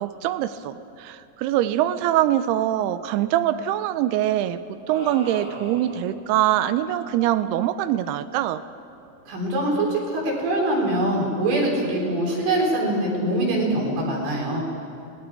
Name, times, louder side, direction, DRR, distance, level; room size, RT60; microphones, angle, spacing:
voice 1, 0.0-8.6, right 12 dB, 80° right, 12 dB, 2.3 m, -23 dB
sound 1, 4.9-6.2, equal, 20° right, 2.6 m, -38 dB
voice 2, 9.3-14.9, right 1 dB, 65° right, -2 dB, 5.9 m, -23 dB
29.0 x 20.5 x 4.8 m, 2.6 s
omnidirectional pair, 5.2 m